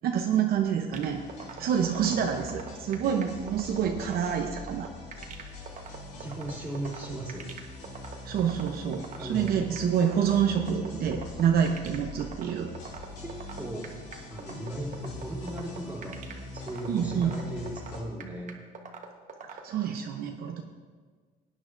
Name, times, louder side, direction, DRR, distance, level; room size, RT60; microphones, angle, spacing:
voice 1, 0.0-1.2 1.6-4.9 8.2-12.7 16.9-17.3 19.5-20.6, right 8 dB, 65° right, 3 dB, 0.8 m, -27 dB
sound 1, 0.9-18.0, left 2 dB, 90° left, 2.7 m, -43 dB
sound 2, 0.9-19.6, right 7 dB, 45° right, 1.2 m, -42 dB
voice 2, 6.2-7.6 9.1-9.6 13.2-14.0 14.3-16.3 16.5-18.7, right 1 dB, 10° right, -3 dB, 3.2 m, -37 dB
17.5 x 9.6 x 2.6 m, 1.5 s
cardioid pair, 110°, 17 cm